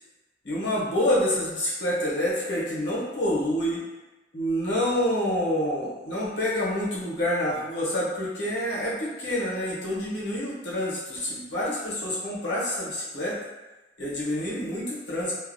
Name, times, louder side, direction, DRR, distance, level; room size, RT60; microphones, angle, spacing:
voice 1, 0.4-3.8 4.3-13.4 14.0-15.3, left 1 dB, 75° left, -6 dB, 0.8 m, -27 dB
2.4 x 2.1 x 2.5 m, 1.1 s
head